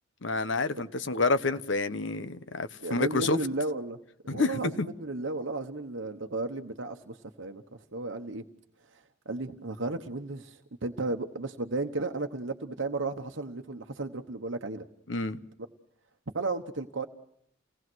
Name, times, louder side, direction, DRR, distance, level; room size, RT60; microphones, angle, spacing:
voice 1, 0.2-3.4 4.3-4.9 15.1-15.4, left 3 dB, 70° left, 13 dB, 1.0 m, -28 dB
voice 2, 2.8-4.0 4.3-7.6 7.9-8.4 8.9-9.0 9.3-14.9 16.3-17.1, right 3 dB, 70° right, 4 dB, 1.1 m, -34 dB
29.5 x 19.0 x 6.2 m, 0.72 s
head